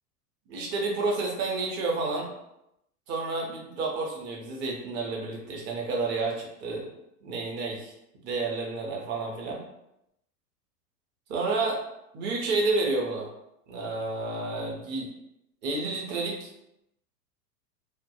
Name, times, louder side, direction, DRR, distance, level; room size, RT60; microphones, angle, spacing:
voice 1, 0.5-2.3 3.1-6.9 7.2-7.9 8.2-9.6 11.3-11.8 12.1-13.3 13.7-15.1 15.6-16.5, right 3 dB, 25° right, 0 dB, 0.5 m, -30 dB
2.1 x 2.1 x 2.7 m, 0.82 s
hypercardioid pair, 105°, 47 cm